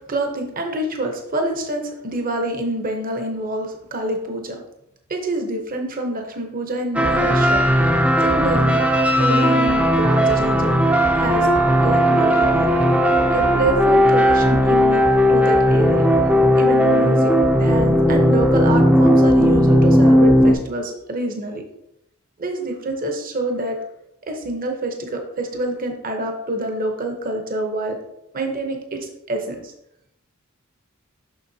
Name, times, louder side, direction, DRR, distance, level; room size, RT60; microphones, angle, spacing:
voice 1, 0.1-4.6 5.1-7.6 8.2-8.8 9.2-10.9 11.2-11.5 11.8-12.7 13.3-16.1 16.6-21.6 22.4-23.8 24.3-28.0 28.3-29.7, right 2 dB, 45° right, 3 dB, 0.9 m, -26 dB
sound 1, 6.9-20.5, equal, 5° right, 0.6 m, -16 dB
6.8 x 6.0 x 2.8 m, 0.81 s
head